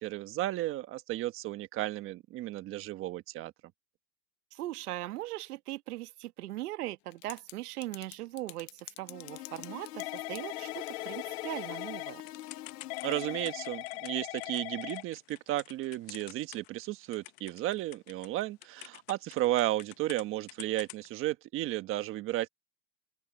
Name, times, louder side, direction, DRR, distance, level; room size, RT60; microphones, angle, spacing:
voice 1, 0.0-3.5 13.0-22.5, right 15 dB, 25° right, 1.3 m, -33 dB
voice 2, 4.5-12.2, right 16 dB, 65° right, 1.3 m, -39 dB
Typing / Telephone, 7.1-7.5 7.8-16.8 17.1-20.2 20.5-21.1, left 22 dB, 40° left, 0.9 m, -41 dB
sound 1, 9.0-13.8, left 14 dB, 70° left, 1.5 m, -44 dB
open air
hypercardioid pair, 145°, 49 cm